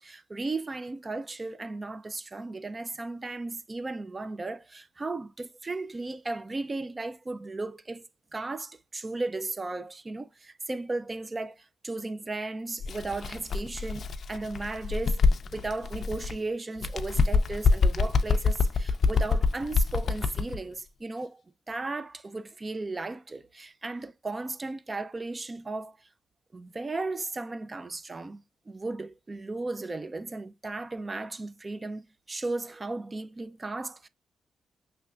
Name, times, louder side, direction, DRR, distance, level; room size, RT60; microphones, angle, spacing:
voice 1, 0.0-8.1 8.3-15.2 15.5-21.4 21.7-26.1 26.5-34.1, right 3 dB, 25° right, 0.4 m, -35 dB
Bird, 12.8-16.4 16.8-20.6, left 4 dB, 50° left, 0.5 m, -26 dB
5.6 x 3.3 x 2.3 m
wide cardioid pair, 135°, 0 cm